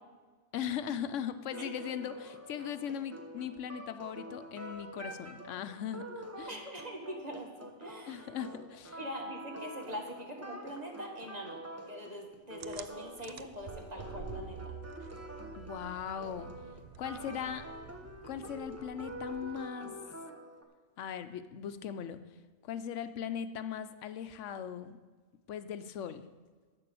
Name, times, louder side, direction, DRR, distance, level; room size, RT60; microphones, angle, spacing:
voice 1, 0.5-6.6 8.1-9.0 15.6-16.5 17.0-17.6 18.2-19.9 21.0-22.2 22.6-25.0 25.5-26.3, left 9 dB, 85° left, 11 dB, 1.0 m, -39 dB
sound 1, 1.5-20.6, right 1 dB, 15° right, 1.0 m, -46 dB
voice 2, 6.5-8.3 9.0-11.6 11.9-14.7, equal, 35° right, 1 dB, 1.8 m, -43 dB
sound 2, 12.6-19.8, right 7 dB, 55° right, 0.5 m, -49 dB
11.0 x 7.4 x 6.9 m, 1.5 s
omnidirectional pair, 1.2 m